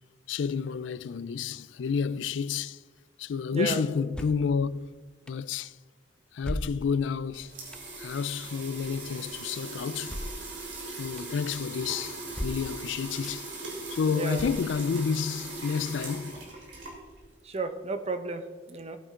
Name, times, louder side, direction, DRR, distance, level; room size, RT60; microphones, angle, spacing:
voice 1, 0.3-2.8 3.2-5.0 5.3-5.7 6.3-7.5 8.0-10.2 11.0-13.5 13.9-16.4, left 6 dB, 75° left, 0.4 m, -30 dB
voice 2, 3.5-3.8 14.1-14.4 17.4-19.0, right 3 dB, 35° right, 0.9 m, -33 dB
sound 1, 4.1-4.5 5.3-5.4 6.4-7.1 7.7-7.9 10.1-10.5 11.2-11.3 12.3-12.8 13.3-13.4 14.3-14.9, equal, 5° left, 0.4 m, -36 dB
sound 2, 7.0-17.3, right 2 dB, 75° right, 3.1 m, -40 dB
17.0 x 8.7 x 3.7 m
head